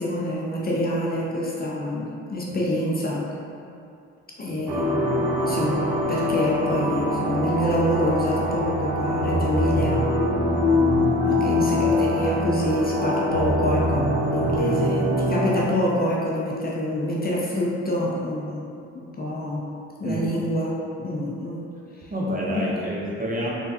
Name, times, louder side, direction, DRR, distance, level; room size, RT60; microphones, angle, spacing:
voice 1, 0.0-3.3 4.4-10.1 11.2-19.7 20.0-21.7 22.0-22.1 22.7-22.8, left 1 dB, 30° left, -4 dB, 0.5 m, -27 dB
voice 2, 4.5-4.8 14.5-14.8 20.0-20.3 22.1-23.5, equal, 25° right, -4 dB, 0.7 m, -29 dB
sound 1, 4.7-15.6, left 1 dB, 90° right, 0.5 m, -23 dB
3.2 x 2.2 x 2.6 m, 2.6 s
hypercardioid pair, 50°, 31 cm